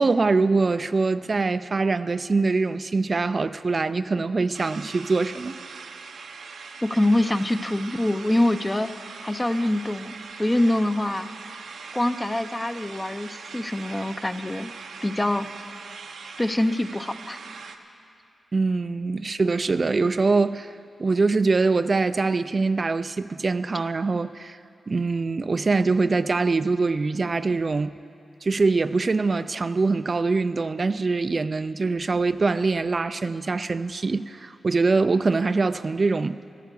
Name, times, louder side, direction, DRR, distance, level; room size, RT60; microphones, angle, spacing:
voice 1, 0.0-5.6 18.5-24.6 24.9-28.0 28.4-36.4, right 3 dB, 45° right, 12 dB, 0.4 m, -23 dB
sound 1, 4.5-17.8, right 5 dB, 80° right, 0.8 m, -41 dB
voice 2, 6.8-11.3 11.9-14.7 15.0-15.7 16.4-17.4, left 1 dB, 20° left, 10 dB, 0.6 m, -25 dB
14.5 x 11.5 x 6.8 m, 2.5 s
cardioid pair, 65°, 0 cm